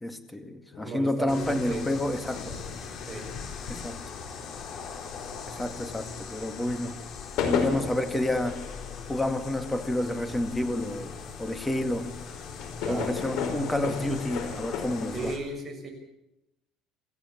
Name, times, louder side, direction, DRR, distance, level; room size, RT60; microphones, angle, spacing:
voice 1, 0.0-2.6 3.7-4.0 5.5-7.0 7.4-8.6 9.1-11.1 11.4-12.1 12.9-15.3, left 1 dB, 10° left, 7 dB, 2.2 m, -29 dB
sound 1, 0.7-6.4 6.6-15.1, left 6 dB, 70° left, 4.8 m, -36 dB
voice 2, 0.8-1.9 3.1-3.3 12.8-13.2 15.1-15.9, right 2 dB, 20° right, 1 dB, 6.6 m, -35 dB
sound 2, 1.3-15.4, left 5 dB, 50° left, 3.8 m, -40 dB
27.0 x 15.0 x 7.4 m, 0.90 s
cardioid pair, 145°, 0 cm